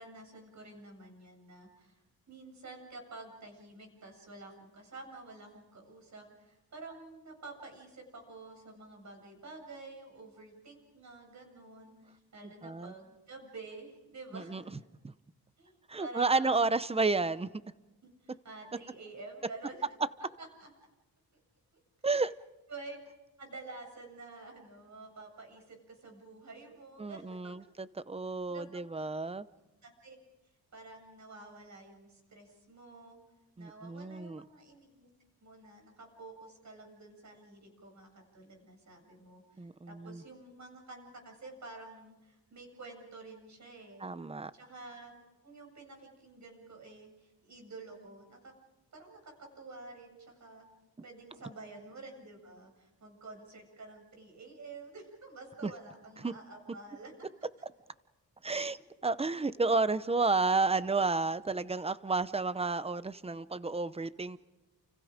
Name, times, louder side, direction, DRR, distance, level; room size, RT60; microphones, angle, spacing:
voice 1, 0.0-14.7 15.6-16.7 18.0-19.8 20.4-20.7 22.7-23.0 23.4-27.7 28.5-29.1 29.8-30.2 30.7-33.2 33.6-35.1 35.4-44.1 44.5-45.2 45.4-48.5 48.9-50.7 51.0-57.1, right 3 dB, 45° right, 3 dB, 7.7 m, -49 dB
voice 2, 12.6-12.9 14.3-14.6 15.0-15.1 15.9-17.5 22.0-22.3 27.0-29.5 33.6-34.4 39.6-40.2 44.0-44.5 55.6-55.7 56.2-56.3 58.4-64.4, right 3 dB, 15° right, 15 dB, 0.8 m, -31 dB
29.5 x 29.5 x 5.2 m, 1.1 s
wide cardioid pair, 135°, 38 cm